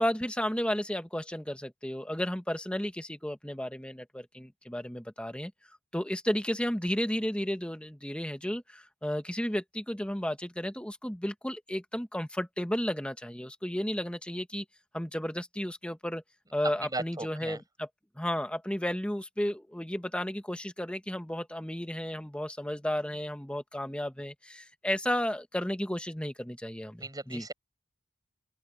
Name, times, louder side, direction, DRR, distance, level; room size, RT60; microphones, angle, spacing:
voice 1, 0.0-5.5 5.9-14.6 14.9-16.2 16.5-17.9 18.2-27.4, equal, 5° left, 1.4 m, -33 dB
voice 2, 16.8-17.6 27.0-27.5, right 2 dB, 20° right, 7.2 m, -37 dB
open air
head